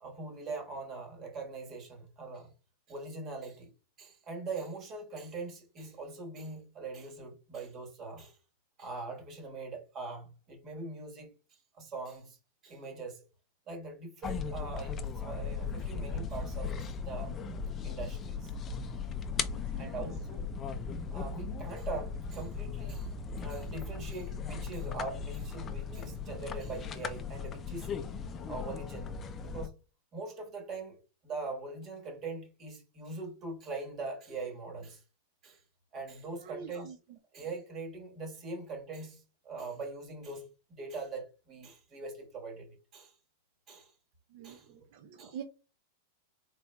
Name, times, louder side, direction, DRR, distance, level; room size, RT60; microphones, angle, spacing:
voice 1, 0.0-2.5 2.9-3.7 4.0-8.4 8.8-12.4 12.6-13.2 13.7-17.4 17.8-18.5 19.8-20.5 21.0-27.9 28.5-29.8 30.1-35.0 35.4-35.6 35.9-37.0 37.3-43.1 43.7-43.9 44.4-44.8 45.2-45.4, right 3 dB, 30° right, 1.5 m, -42 dB
sound 1, 14.2-29.7, left 5 dB, 25° left, 0.5 m, -37 dB
voice 2, 36.4-36.9 44.3-44.6 44.9-45.4, right 8 dB, 60° right, 0.6 m, -44 dB
4.2 x 4.0 x 2.3 m
supercardioid pair, 145°, 0 cm